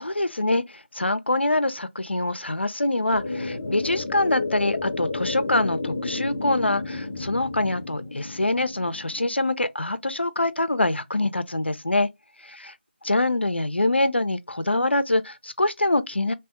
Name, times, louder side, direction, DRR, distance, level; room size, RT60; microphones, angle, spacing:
voice 1, 0.0-12.1 12.4-12.7 13.0-16.3, left 2 dB, 70° left, 0.6 m, -25 dB
sound 1, 3.1-9.2, left 3 dB, 20° left, 0.5 m, -31 dB
3.5 x 3.0 x 3.3 m
figure-of-eight pair, 165°, 6 cm